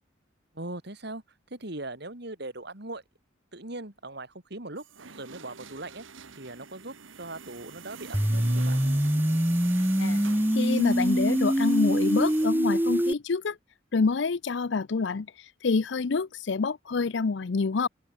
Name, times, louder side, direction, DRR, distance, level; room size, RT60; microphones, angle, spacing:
voice 1, 0.5-1.2 1.5-3.0 3.5-4.9 5.1-6.0 6.4-8.8, right 2 dB, 55° right, 3.3 m, -40 dB
sound 1, 4.8-12.5, right 5 dB, 75° right, 1.6 m, -44 dB
sound 2, 8.1-13.1, equal, 10° right, 1.2 m, -24 dB
voice 2, 10.5-13.6 13.9-17.9, left 4 dB, 60° left, 0.5 m, -27 dB
open air
head